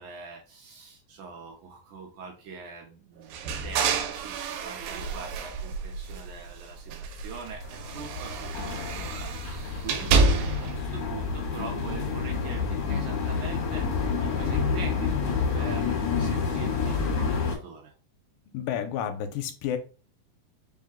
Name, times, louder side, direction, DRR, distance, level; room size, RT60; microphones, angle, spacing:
voice 1, 0.0-9.4 9.8-17.9, right 5 dB, 70° right, 1 dB, 2.0 m, -42 dB
sound 1, 3.3-6.5 6.9-10.8, right 4 dB, 90° right, 2.4 m, -29 dB
sound 2, 7.6-17.6, left 5 dB, 65° left, 2.4 m, -29 dB
voice 2, 18.5-19.8, left 9 dB, 90° left, 8 dB, 2.3 m, -30 dB
5.4 x 2.2 x 3.6 m, 0.35 s
omnidirectional pair, 4.1 m